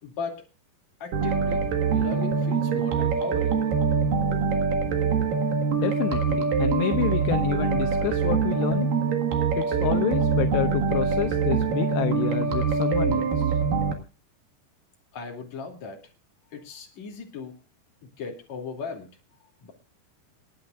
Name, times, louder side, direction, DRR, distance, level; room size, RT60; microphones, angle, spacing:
voice 1, 0.0-0.4 1.0-1.7 1.9-3.6 15.1-16.1 16.5-17.6 18.0-19.1 19.6-19.7, left 5 dB, 45° left, 0 dB, 3.6 m, -37 dB
sound 1, 1.1-13.9, right 5 dB, 60° right, 3.1 m, -24 dB
voice 2, 5.8-8.9 9.6-13.6, left 13 dB, 80° left, 7 dB, 2.8 m, -28 dB
28.5 x 9.7 x 2.5 m, 0.30 s
omnidirectional pair, 5.1 m